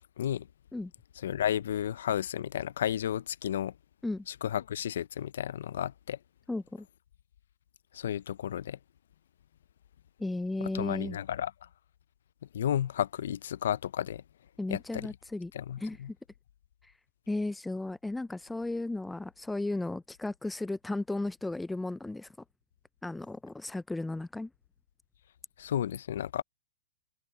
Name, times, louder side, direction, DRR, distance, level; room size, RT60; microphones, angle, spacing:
voice 1, 0.2-0.5 1.2-3.7 4.3-6.2 7.9-8.8 10.6-11.7 12.5-14.2 14.7-15.1 15.5-16.1 25.6-26.4, left 10 dB, 70° left, 0.4 m, -32 dB
voice 2, 6.5-6.9 10.2-11.2 14.6-15.5 15.8-16.0 16.8-16.9 17.3-22.3 23.0-24.5, left 2 dB, 5° left, 0.3 m, -34 dB
hypercardioid pair, 120°, 0 cm